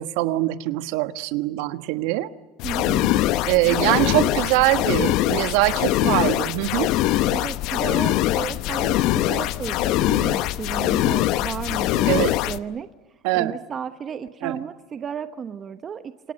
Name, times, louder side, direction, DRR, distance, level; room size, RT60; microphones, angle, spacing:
voice 1, 0.0-2.3 3.4-6.9 12.1-12.4 13.2-13.6 14.4-14.6, right 17 dB, 75° right, 11 dB, 1.3 m, -23 dB
sound 1, 2.6-12.6, left 15 dB, 65° left, 0.9 m, -22 dB
voice 2, 2.6-3.2 3.6-4.4 7.3-12.9 13.3-16.3, right 7 dB, 35° right, 10 dB, 1.1 m, -33 dB
29.0 x 26.0 x 6.5 m, 1.2 s
supercardioid pair, 105°, 0 cm